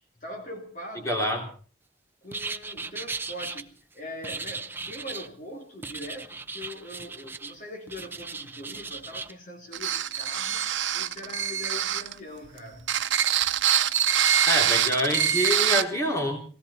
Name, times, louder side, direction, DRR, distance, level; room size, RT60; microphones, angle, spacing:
voice 1, 0.2-1.2 2.2-10.7 10.9-12.9, left 1 dB, 45° left, 2.9 m, -42 dB
voice 2, 1.0-1.4 14.5-16.4, equal, 15° left, 3.4 m, -26 dB
sound 1, 2.3-3.6 4.2-5.3 5.8-7.5 7.9-9.3, right 4 dB, 10° right, 0.7 m, -37 dB
sound 2, 9.7-12.1 12.8-15.8, right 9 dB, 85° right, 0.8 m, -24 dB
20.0 x 17.0 x 4.3 m
head